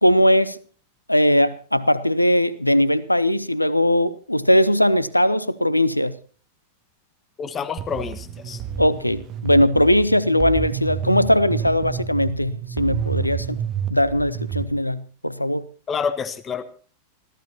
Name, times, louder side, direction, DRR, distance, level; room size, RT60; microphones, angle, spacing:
voice 1, 0.0-0.6 1.1-6.2 8.8-13.6 13.9-15.7, left 1 dB, 85° left, 0.7 m, -19 dB
voice 2, 7.4-8.6 15.9-16.6, left 6 dB, 25° left, 1.2 m, -28 dB
sound 1, 7.8-14.6, right 8 dB, 35° right, 1.8 m, -30 dB
26.5 x 14.5 x 2.9 m
figure-of-eight pair, 90°, 0 cm